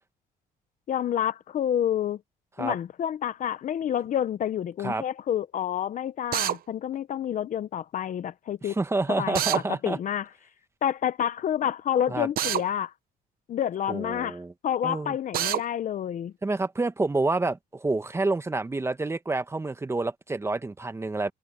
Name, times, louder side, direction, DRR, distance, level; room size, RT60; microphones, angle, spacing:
voice 1, 0.9-2.2 2.6-8.8 9.1-9.4 9.8-10.3 10.8-12.9 13.5-14.4 14.6-16.3, left 10 dB, 50° left, 0.9 m, -28 dB
Drill, 6.3-6.6 9.3-9.6 12.4-12.6 15.3-15.6, right 12 dB, 60° right, 0.9 m, -26 dB
voice 2, 8.6-10.0 12.1-12.3 13.9-14.5 14.8-15.2 16.4-21.3, right 3 dB, 15° right, 1.3 m, -28 dB
cardioid pair, 110°, 17 cm